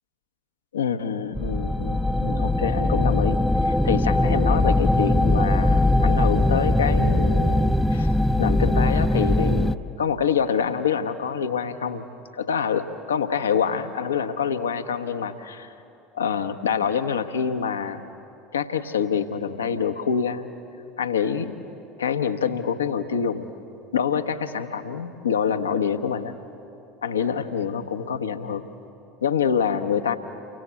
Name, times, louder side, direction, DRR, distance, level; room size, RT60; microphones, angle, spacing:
voice 1, 0.7-8.1 8.4-9.7 10.0-12.1 12.3-15.7 16.1-18.0 18.5-20.5 21.0-21.6 22.0-23.5 23.9-26.3 27.0-28.7 29.2-30.2, left 7 dB, 75° left, 9 dB, 1.1 m, -26 dB
sound 1, 1.4-9.8, left 1 dB, ahead, 0.7 m, -21 dB
29.5 x 24.0 x 8.3 m, 2.9 s
figure-of-eight pair, 70°, 0 cm